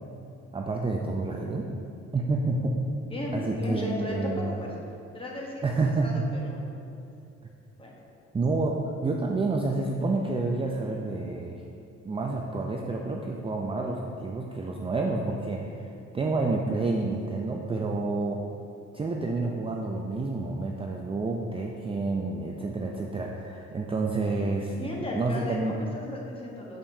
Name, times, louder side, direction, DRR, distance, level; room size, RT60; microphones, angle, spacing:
voice 1, 0.5-1.7 2.1-2.8 3.3-4.6 5.6-6.3 8.3-11.6 12.0-15.9 16.1-18.4 18.9-24.9 25.1-25.7, right 3 dB, 20° right, 0 dB, 0.4 m, -29 dB
voice 2, 3.1-4.7 5.1-6.7 7.8-7.9 24.8-26.8, left 1 dB, 20° left, -3 dB, 1.1 m, -35 dB
6.5 x 5.5 x 2.7 m, 2.5 s
cardioid pair, 90°, 30 cm